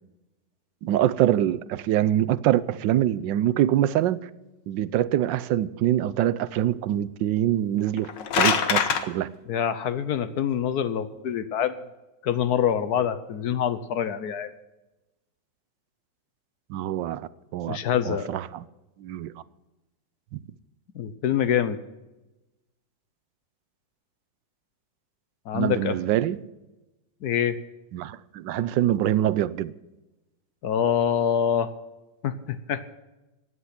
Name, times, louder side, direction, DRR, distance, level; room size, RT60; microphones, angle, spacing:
voice 1, 0.8-4.2 4.7-8.1 8.4-9.3 16.7-17.8 18.1-18.6 19.0-19.3 25.5-26.4 27.9-29.7, right 12 dB, 85° right, 1.3 m, -24 dB
sound 1, 7.9-9.0, left 7 dB, 90° left, 1.8 m, -23 dB
voice 2, 9.5-11.8 12.2-14.5 17.6-18.3 20.9-21.8 25.5-25.9 27.2-27.6 30.6-31.7 32.2-32.8, left 8 dB, 65° left, 1.3 m, -25 dB
16.5 x 9.7 x 5.9 m
omnidirectional pair, 1.9 m